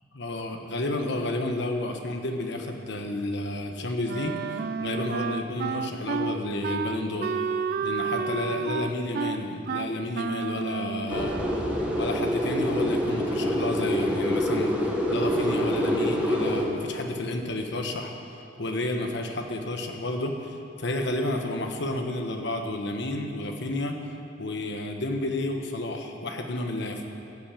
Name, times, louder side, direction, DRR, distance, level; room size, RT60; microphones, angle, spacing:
voice 1, 0.1-7.3 7.8-11.4 11.9-14.7 15.1-18.1 18.6-24.0 24.4-27.0, left 2 dB, 65° left, 4 dB, 1.2 m, -31 dB
Wind instrument woodwind instrument, 4.1-11.6, right 5 dB, 55° right, 0.4 m, -31 dB
sound 1, 11.1-16.7, equal, 5° right, 1.5 m, -26 dB
14.5 x 5.8 x 8.4 m, 2.8 s
head